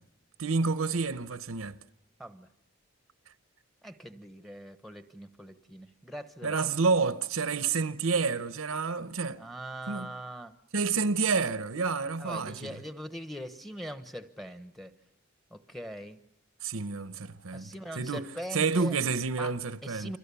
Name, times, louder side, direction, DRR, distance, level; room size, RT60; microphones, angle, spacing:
voice 1, 0.4-1.8 6.4-9.4 9.9-10.1 10.7-12.7 16.6-17.7 18.0-18.3 18.5-20.1, right 4 dB, 80° right, 1.0 m, -29 dB
voice 2, 3.8-6.6 9.4-10.6 12.2-14.9 15.5-16.2 17.5-18.9 19.4-20.2, equal, ahead, 1.1 m, -42 dB
29.5 x 24.0 x 7.0 m
head